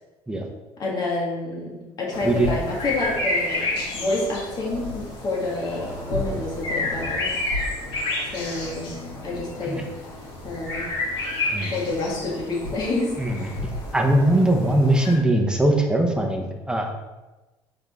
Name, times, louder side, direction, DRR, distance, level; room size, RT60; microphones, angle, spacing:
voice 1, 0.8-7.3 8.3-8.9 9.2-10.1 10.4-10.9 11.7-13.6, left 2 dB, 45° left, -3 dB, 1.8 m, -28 dB
sound 1, 2.1-15.1, left 2 dB, 60° left, 2.2 m, -30 dB
voice 2, 13.2-13.5 13.9-17.0, right 1 dB, 10° right, 2 dB, 1.0 m, -21 dB
7.8 x 3.9 x 3.7 m, 1.1 s
cardioid pair, 110°, 9 cm